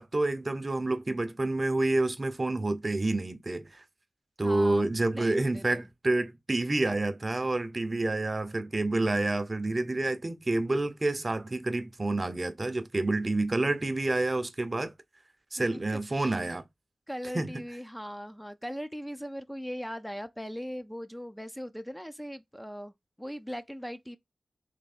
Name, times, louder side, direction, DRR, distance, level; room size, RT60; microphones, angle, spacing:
voice 1, 0.0-3.8 4.4-14.9 15.5-16.6 17.3-17.6, right 2 dB, 40° right, 0.7 m, -28 dB
voice 2, 4.4-4.8 5.1-5.9 15.6-16.4 17.1-22.9 23.2-24.2, equal, 5° left, 0.5 m, -39 dB
3.4 x 3.0 x 4.2 m
cardioid pair, 40°, 0 cm